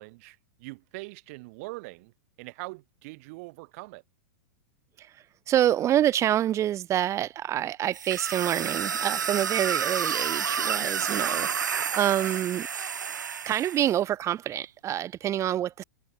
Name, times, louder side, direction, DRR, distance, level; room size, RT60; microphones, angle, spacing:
voice 1, 0.0-4.0, right 25 dB, 55° right, 4.0 m, -42 dB
voice 2, 5.0-12.7 13.5-15.8, right 11 dB, 30° right, 1.7 m, -27 dB
sound 1, 7.9-13.9, right 7 dB, 90° right, 1.2 m, -30 dB
hypercardioid pair, 110°, 10 cm